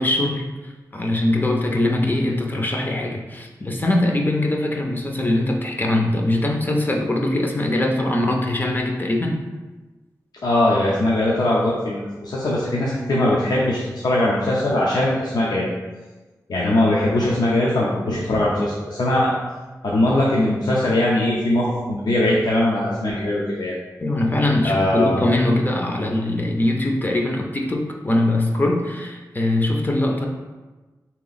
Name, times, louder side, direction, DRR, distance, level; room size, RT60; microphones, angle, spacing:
voice 1, 0.0-9.4 24.0-30.3, left 1 dB, 30° left, 1 dB, 0.5 m, -22 dB
voice 2, 10.4-15.7 16.5-19.3 19.8-23.7 24.6-25.1, left 1 dB, 80° left, -5 dB, 0.6 m, -20 dB
3.3 x 2.9 x 3.9 m, 1.2 s
wide cardioid pair, 120°, 7 cm